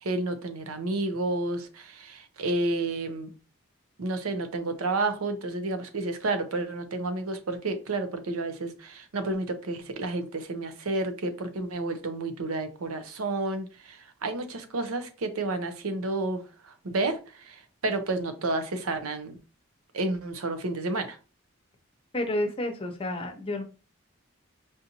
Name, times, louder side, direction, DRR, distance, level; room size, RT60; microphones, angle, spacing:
voice 1, 0.0-3.3 4.0-19.4 19.9-21.2, right 2 dB, 85° right, 8 dB, 0.7 m, -31 dB
voice 2, 22.1-23.6, left 1 dB, 25° left, 4 dB, 0.6 m, -30 dB
4.9 x 2.6 x 2.8 m, 0.34 s
head